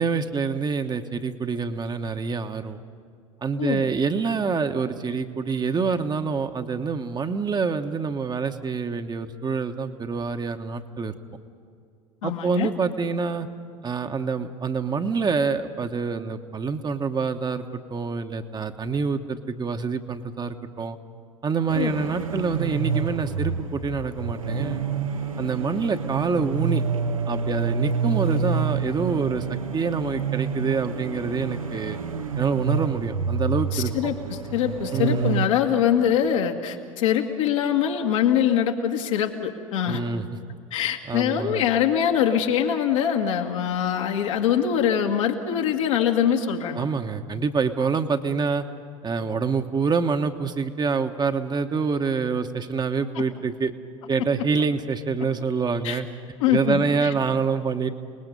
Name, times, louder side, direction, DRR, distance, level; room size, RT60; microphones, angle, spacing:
voice 1, 0.0-2.8 3.4-11.1 12.2-13.5 13.8-21.0 21.4-24.9 25.4-26.8 27.3-32.0 32.4-33.9 34.9-35.4 39.9-40.2 41.1-41.7 46.7-48.6 49.0-53.7 54.1-56.1 56.5-57.9, right 5 dB, 25° right, 7 dB, 1.2 m, -26 dB
voice 2, 12.2-12.7 21.8-21.9 33.7-40.0 40.7-46.8 55.8-56.0 56.4-57.1, left 9 dB, 70° left, 2 dB, 2.0 m, -23 dB
sound 1, 21.7-35.5, right 5 dB, 90° right, 1.1 m, -28 dB
29.5 x 20.0 x 5.4 m, 2.3 s
figure-of-eight pair, 75°, 17 cm